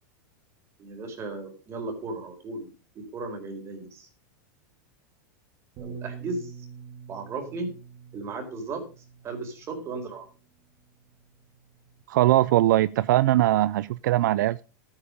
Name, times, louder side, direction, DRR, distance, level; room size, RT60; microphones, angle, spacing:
voice 1, 0.8-4.1 5.8-6.5 7.1-7.7 8.1-8.8 9.2-10.3, right 3 dB, 25° right, 4.4 m, -35 dB
Bass guitar, 5.8-10.3 11.0-12.0, right 7 dB, 40° right, 3.0 m, -45 dB
voice 2, 12.1-14.6, right 15 dB, 75° right, 0.5 m, -21 dB
13.0 x 9.0 x 5.2 m
supercardioid pair, 150°, 10 cm